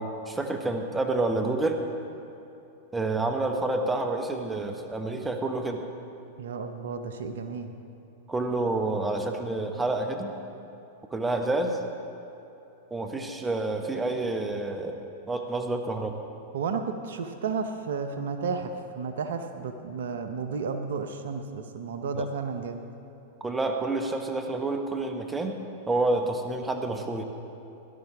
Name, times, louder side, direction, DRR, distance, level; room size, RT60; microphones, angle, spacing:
voice 1, 0.0-1.8 2.9-5.8 8.3-10.3 11.1-11.8 12.9-15.0 15.3-16.2 22.1-22.3 23.4-25.6 25.9-27.2, right 2 dB, 15° right, 4 dB, 1.3 m, -28 dB
voice 2, 6.4-7.7 16.5-22.8, right 5 dB, 70° right, 7 dB, 0.8 m, -32 dB
17.5 x 12.0 x 3.5 m, 2.9 s
hypercardioid pair, 100°, 0 cm